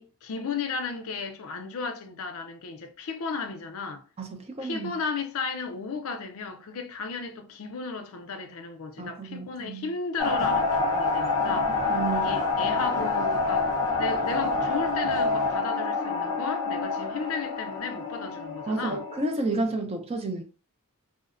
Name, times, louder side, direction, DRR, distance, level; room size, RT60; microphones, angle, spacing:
voice 1, 0.0-4.0 4.6-13.7 14.0-19.0, left 4 dB, 65° left, 0.4 m, -34 dB
voice 2, 4.2-4.9 9.0-9.9 11.9-12.3 18.7-20.4, right 2 dB, 25° right, 0.4 m, -31 dB
sound 1, 10.2-19.3, left 3 dB, 15° left, 0.6 m, -27 dB
2.7 x 2.1 x 2.4 m
head